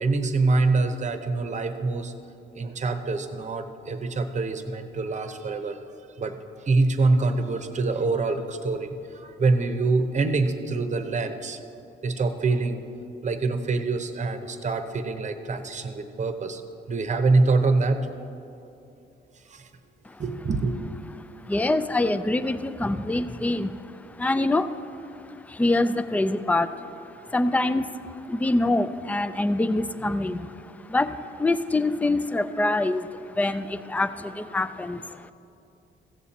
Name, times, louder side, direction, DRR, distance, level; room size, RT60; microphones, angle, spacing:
voice 1, 0.0-2.1 2.5-5.8 6.2-6.4 6.6-11.6 12.0-12.8 13.2-16.6 16.9-18.0 19.5-19.7 20.2-20.7, right 3 dB, 35° right, 8 dB, 0.9 m, -25 dB
voice 2, 21.5-24.8 25.1-26.9 27.2-35.3, left 2 dB, 5° left, 12 dB, 0.4 m, -25 dB
15.5 x 7.3 x 4.2 m, 2.7 s
cardioid pair, 90°, 20 cm